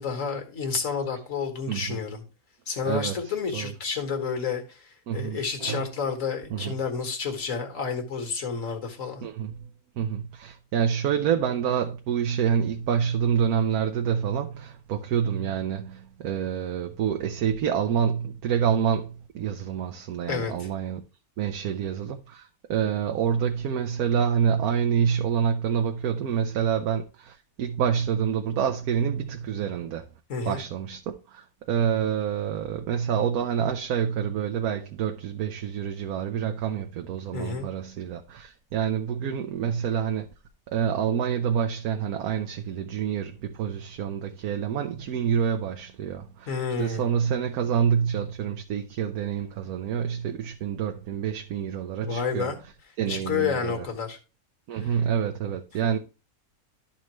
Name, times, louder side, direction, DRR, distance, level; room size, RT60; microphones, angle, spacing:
voice 1, 0.0-2.2 2.7-9.3 20.3-20.7 30.3-30.6 37.3-37.7 46.5-47.1 52.0-52.6 53.1-54.2 54.8-55.0, left 5 dB, 65° left, 1.9 m, -30 dB
voice 2, 1.7-2.0 2.8-3.2 3.5-3.7 5.1-5.9 6.5-6.7 9.2-9.7 10.0-21.0 21.4-30.1 30.5-40.3 40.7-52.5 53.0-53.8 54.7-56.0, right 8 dB, 80° right, 1.2 m, -27 dB
12.5 x 4.3 x 3.0 m
omnidirectional pair, 1.5 m